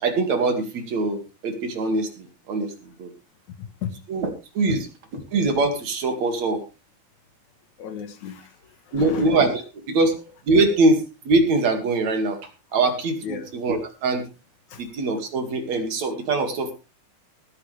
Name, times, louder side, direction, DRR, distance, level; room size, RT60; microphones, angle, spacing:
voice 1, 0.0-2.7 3.0-3.1 4.1-4.3 4.6-4.8 5.3-6.6 8.9-9.6 9.9-10.1 10.5-12.4 12.7-14.2 14.8-16.7, right 2 dB, 60° right, 3.4 m, -22 dB
voice 2, 3.6-4.0 7.8-8.6 8.9-9.3 13.2-13.5 14.7-14.9, left 8 dB, 70° left, 2.7 m, -34 dB
20.0 x 9.9 x 3.4 m
omnidirectional pair, 3.6 m